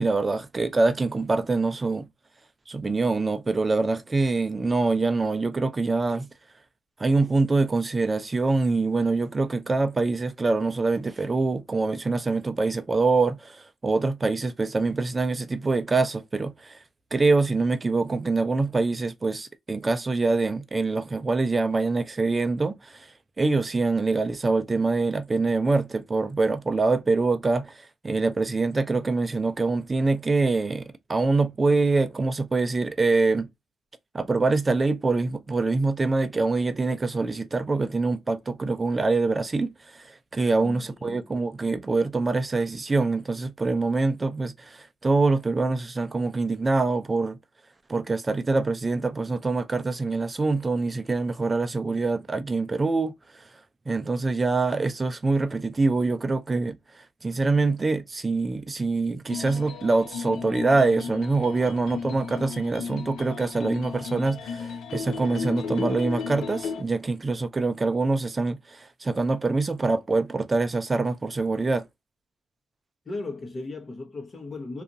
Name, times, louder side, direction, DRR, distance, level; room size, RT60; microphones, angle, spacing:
voice 1, 0.0-2.1 2.7-6.3 7.0-16.8 17.1-23.1 23.4-33.5 34.1-47.4 47.9-53.4 53.9-56.8 57.2-71.9, right 3 dB, 25° right, 0.5 m, -25 dB
voice 2, 40.4-41.3 73.1-74.8, left 3 dB, 35° left, 0.8 m, -37 dB
sound 1, 59.3-66.8, left 6 dB, 75° left, 0.5 m, -35 dB
2.7 x 2.4 x 2.6 m
cardioid pair, 90°, 0 cm